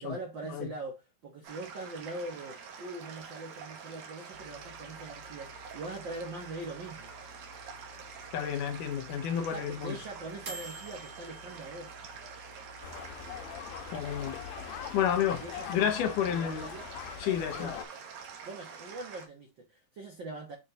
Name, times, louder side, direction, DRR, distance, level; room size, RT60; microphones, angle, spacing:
voice 1, 0.0-7.1 9.4-11.9 15.4-15.9 16.2-16.9 17.6-17.8 18.4-20.6, right 2 dB, 85° right, 1.0 m, -42 dB
sound 1, 1.4-19.3, right 6 dB, 65° right, 2.6 m, -47 dB
sound 2, 4.3-13.4, right 1 dB, 45° right, 1.3 m, -51 dB
voice 2, 8.3-10.0 13.9-14.4 14.9-15.4 15.7-16.7 17.2-17.7, left 9 dB, 75° left, 2.2 m, -30 dB
sound 3, 12.8-17.9, left 10 dB, 90° left, 2.5 m, -41 dB
7.3 x 4.1 x 3.9 m
omnidirectional pair, 4.1 m